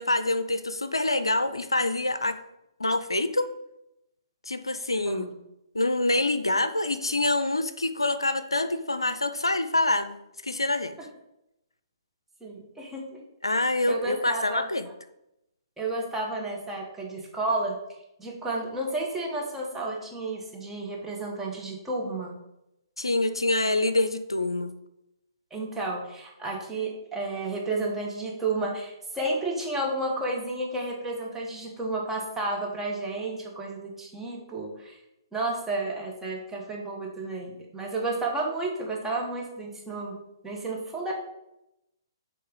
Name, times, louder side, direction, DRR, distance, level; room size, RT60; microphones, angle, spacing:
voice 1, 0.0-2.4 2.8-3.5 4.5-5.3 5.7-10.2 10.4-11.0 13.4-14.9 23.0-24.7, left 2 dB, 85° left, 11 dB, 0.4 m, -26 dB
voice 2, 5.1-5.4 12.4-13.2 13.9-14.7 15.8-17.8 18.2-22.4 25.5-35.0 35.3-40.2 40.4-41.1, right 2 dB, 5° right, -3 dB, 1.3 m, -31 dB
7.6 x 3.2 x 3.8 m, 0.86 s
figure-of-eight pair, 125°, 2 cm